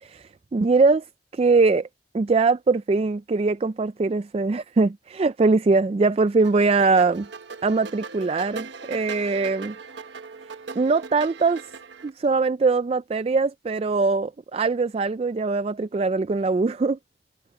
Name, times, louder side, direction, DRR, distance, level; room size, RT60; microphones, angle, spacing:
voice 1, 0.0-1.0 1.3-1.9 2.1-7.3 7.6-9.8 10.8-11.7 12.0-17.0, right 3 dB, 35° right, 0.3 m, -22 dB
sound 1, 6.4-12.1, right 4 dB, 80° right, 1.1 m, -39 dB
head